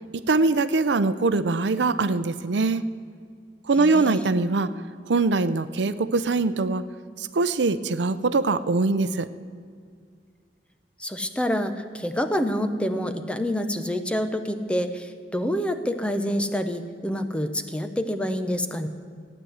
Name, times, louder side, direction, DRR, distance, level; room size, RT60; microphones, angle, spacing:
voice 1, 0.3-2.8 3.7-4.7 5.1-6.8 7.3-9.3, right 3 dB, 85° right, 13 dB, 0.6 m, -22 dB
voice 2, 3.8-4.3 11.0-18.9, equal, 5° left, 8 dB, 0.8 m, -27 dB
15.0 x 9.7 x 7.9 m, 2.1 s
head